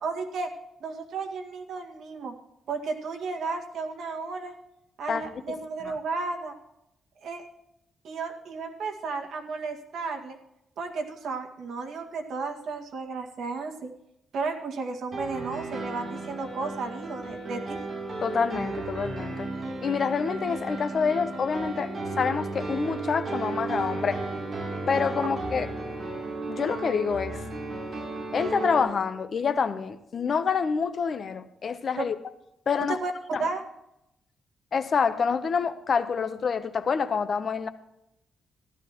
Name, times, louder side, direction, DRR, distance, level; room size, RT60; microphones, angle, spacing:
voice 1, 0.0-0.5 0.8-2.3 2.7-4.5 5.0-6.5 7.2-7.4 8.0-10.4 10.8-13.9 14.3-17.8 31.9-32.1 32.9-33.1 33.4-33.6, right 4 dB, 70° right, 2.0 m, -33 dB
Piano, 15.1-28.8, right 3 dB, 35° right, 3.2 m, -34 dB
voice 2, 18.2-19.5 19.8-24.2 24.9-25.7 26.5-27.4 28.3-32.1 32.7-33.0 33.3-33.4 34.7-37.7, left 6 dB, 45° left, 0.8 m, -27 dB
15.0 x 13.0 x 3.0 m
wide cardioid pair, 160°, 0 cm